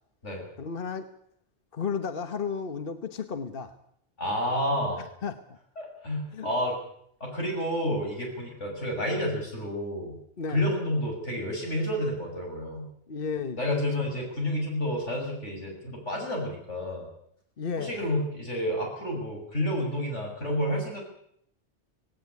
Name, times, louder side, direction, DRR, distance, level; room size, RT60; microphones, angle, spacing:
voice 1, 0.6-1.1 1.7-3.8 5.2-5.4 6.3-6.5 10.4-10.6 13.1-14.1 17.6-18.1, left 5 dB, 50° left, 10 dB, 1.3 m, -33 dB
voice 2, 4.2-5.0 5.8-6.8 7.2-10.2 10.5-12.9 13.6-17.1 17.8-21.0, equal, 90° left, 0 dB, 7.3 m, -30 dB
18.0 x 17.5 x 9.5 m, 0.69 s
omnidirectional pair, 1.2 m